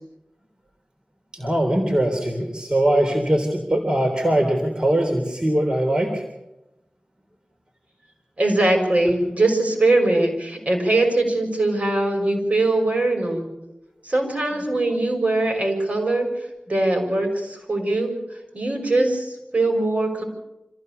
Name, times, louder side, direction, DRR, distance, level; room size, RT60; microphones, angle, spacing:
voice 1, 1.3-6.2, right 1 dB, 30° right, 2 dB, 3.5 m, -21 dB
voice 2, 8.4-13.5 14.0-16.3 16.7-18.1 18.5-20.2, right 2 dB, 55° right, 2 dB, 6.2 m, -21 dB
26.0 x 15.5 x 6.8 m, 0.94 s
wide cardioid pair, 55°, 3 cm